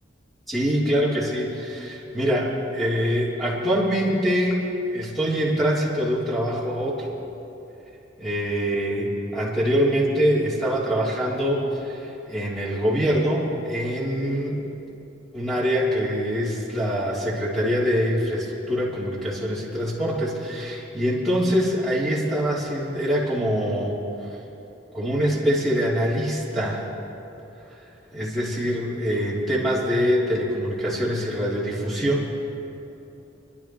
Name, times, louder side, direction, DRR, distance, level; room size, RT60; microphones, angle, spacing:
voice 1, 0.5-4.6 4.9-7.1 8.2-14.6 15.3-24.0 24.9-26.8 28.1-32.3, equal, ahead, -9 dB, 3.4 m, -24 dB
29.5 x 11.5 x 3.2 m, 3.0 s
head